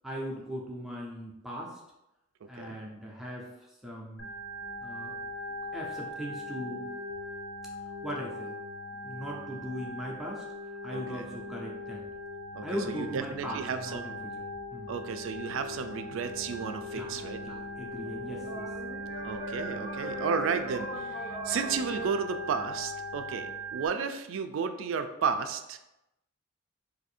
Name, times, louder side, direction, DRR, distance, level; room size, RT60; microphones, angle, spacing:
voice 1, 0.0-1.8 2.5-4.3 4.8-5.2 5.7-6.9 8.0-8.6 9.0-10.4 10.8-12.0 12.6-14.1 14.7-14.9 16.9-17.1 17.4-18.7, equal, ahead, -3 dB, 0.4 m, -39 dB
Organ, 4.2-23.9, equal, 85° left, 0.8 m, -40 dB
voice 2, 10.9-11.2 12.5-14.2 14.9-17.4 19.2-21.2 21.4-25.8, right 5 dB, 75° right, 9 dB, 0.3 m, -33 dB
sound 1, 15.5-22.1, equal, 45° left, 0.6 m, -43 dB
2.6 x 2.5 x 4.2 m, 0.91 s
head